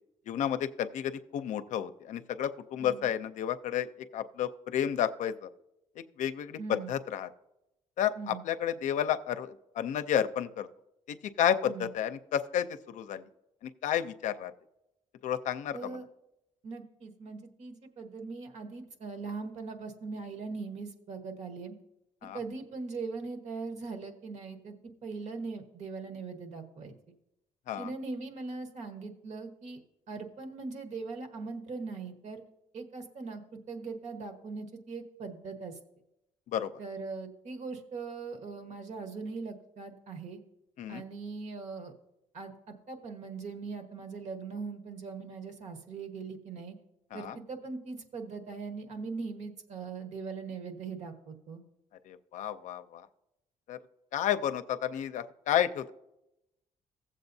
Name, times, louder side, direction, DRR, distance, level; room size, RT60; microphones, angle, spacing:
voice 1, 0.3-5.5 6.0-7.3 8.0-10.7 11.1-13.2 13.6-14.5 15.2-16.0 22.2-22.4 27.7-27.9 36.5-36.7 40.8-41.0 47.1-47.4 52.1-53.1 53.7-53.8 54.1-55.9, left 10 dB, 75° left, 11 dB, 0.5 m, -31 dB
voice 2, 6.6-7.0 8.1-8.4 11.6-11.9 15.7-16.0 16.6-21.7 22.3-24.7 25.0-26.9 27.8-29.8 30.1-32.4 32.7-35.7 36.8-40.4 40.9-41.9 42.3-46.7 47.1-51.6, right 4 dB, 65° right, 5 dB, 1.3 m, -40 dB
15.5 x 7.4 x 2.7 m, 0.88 s
cardioid pair, 115°, 13 cm